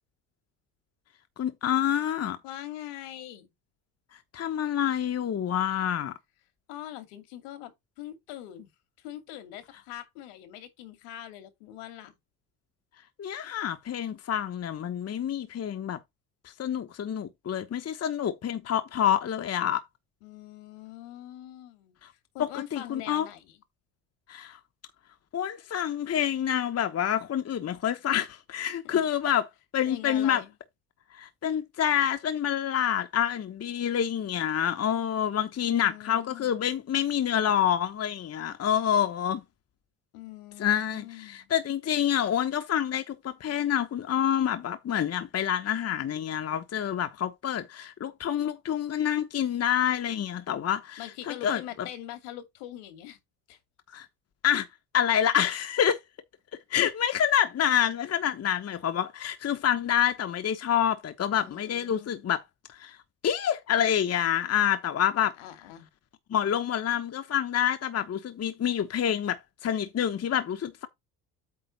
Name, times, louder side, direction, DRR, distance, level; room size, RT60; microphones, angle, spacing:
voice 1, 1.4-2.4 4.3-6.1 13.2-16.0 16.4-19.8 22.5-23.2 24.3-24.6 25.3-29.4 29.7-30.4 31.1-39.4 40.6-51.0 51.4-51.6 53.9-54.1 54.4-54.7 54.9-56.0 56.7-62.4 62.7-63.0 63.2-65.3 66.3-70.9, left 9 dB, 35° left, 1.1 m, -27 dB
voice 2, 2.4-3.5 6.7-8.7 9.0-12.2 20.2-23.6 28.8-29.1 29.8-30.5 35.6-36.5 40.1-41.5 51.0-53.2 53.5-53.6 58.2-58.3 61.4-62.3 65.2-65.9, left 13 dB, 75° left, 2.5 m, -43 dB
8.8 x 3.7 x 5.3 m
hypercardioid pair, 70°, 43 cm